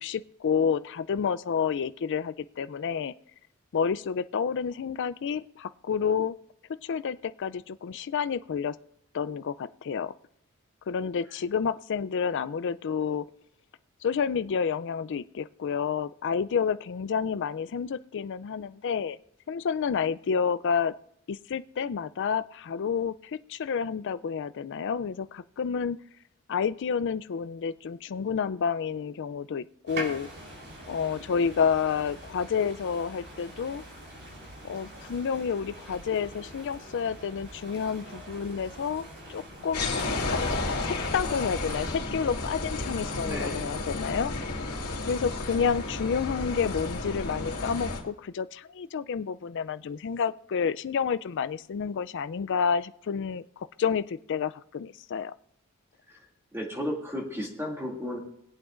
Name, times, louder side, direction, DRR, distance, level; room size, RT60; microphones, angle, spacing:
voice 1, 0.0-3.1 3.7-6.3 6.8-8.8 9.1-10.1 10.9-13.3 14.0-19.2 19.5-20.9 21.3-26.0 26.5-30.3 30.9-33.8 34.6-39.0 39.3-40.4 40.8-44.3 45.0-55.3, left 6 dB, 55° left, 14 dB, 0.4 m, -29 dB
sound 1, 29.9-42.0, right 1 dB, 50° right, 3.7 m, -44 dB
sound 2, 39.7-48.0, left 2 dB, 90° left, 2.6 m, -32 dB
voice 2, 43.2-43.7 56.1-56.2 56.5-58.2, equal, 10° right, -1 dB, 2.4 m, -34 dB
20.5 x 8.6 x 2.5 m, 0.74 s
head